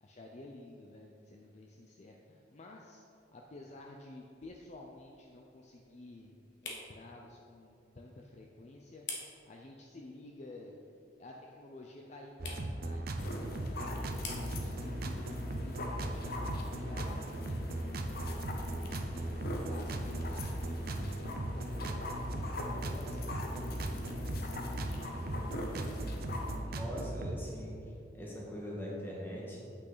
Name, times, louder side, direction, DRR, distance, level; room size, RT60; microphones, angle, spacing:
voice 1, 0.0-3.0 3.3-9.1 9.4-10.8 11.2-18.2 19.1-21.7 22.2-25.6, left 2 dB, 40° left, 0 dB, 0.5 m, -52 dB
sound 1, 3.1-17.9, left 4 dB, 75° left, 1.3 m, -52 dB
sound 2, 12.4-27.4, right 1 dB, 55° right, 0.6 m, -38 dB
sound 3, 13.2-26.6, left 1 dB, 55° left, 0.8 m, -43 dB
voice 2, 26.6-27.7 28.1-29.6, equal, 10° left, -5 dB, 1.6 m, -41 dB
8.3 x 6.0 x 4.0 m, 2.7 s
head